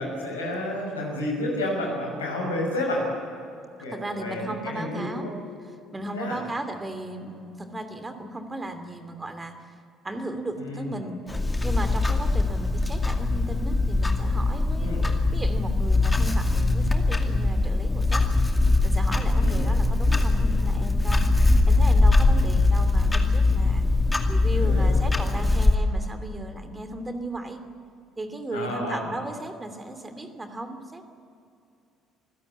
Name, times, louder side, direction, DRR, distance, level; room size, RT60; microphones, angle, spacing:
voice 1, 0.0-3.0 3.8-5.3 6.1-6.4 10.6-10.9 14.8-15.0 19.3-19.6 24.5-25.0 28.5-29.0, left 1 dB, 75° left, 0 dB, 6.0 m, -30 dB
voice 2, 3.9-5.2 5.6-9.8 10.0-11.2 11.6-14.9 15.3-18.3 18.8-21.2 21.7-23.9 24.3-27.6 28.2-31.0, right 1 dB, 20° right, 8 dB, 2.7 m, -35 dB
Clock, 11.3-25.8, left 2 dB, 15° left, 2.3 m, -22 dB
26.5 x 16.0 x 8.6 m, 2.6 s
figure-of-eight pair, 55°, 0 cm